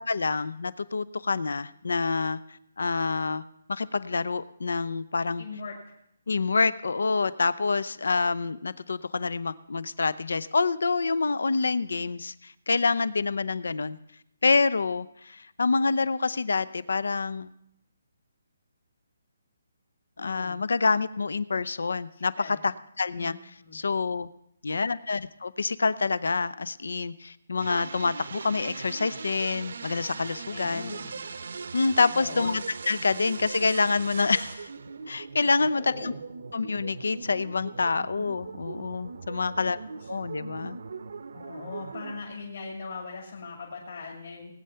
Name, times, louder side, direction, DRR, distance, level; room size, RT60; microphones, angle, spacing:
voice 1, 0.0-2.4 2.8-3.4 3.7-5.4 6.3-14.0 14.4-17.5 20.2-23.3 23.7-24.3 24.6-30.9 31.7-34.7 35.1-36.1 36.5-39.8 40.1-40.8, left 4 dB, 85° left, 17 dB, 0.6 m, -27 dB
voice 2, 5.4-5.9 20.2-20.6 22.1-22.6 23.2-23.8 30.5-31.1 32.1-32.5 35.7-36.2 39.5-39.7 40.0-40.1 41.3-44.5, left 4 dB, 45° left, -2 dB, 2.3 m, -40 dB
sound 1, 27.6-42.2, right 4 dB, 55° right, 0.7 m, -40 dB
19.0 x 9.0 x 5.6 m, 0.77 s
hypercardioid pair, 180°, 0 cm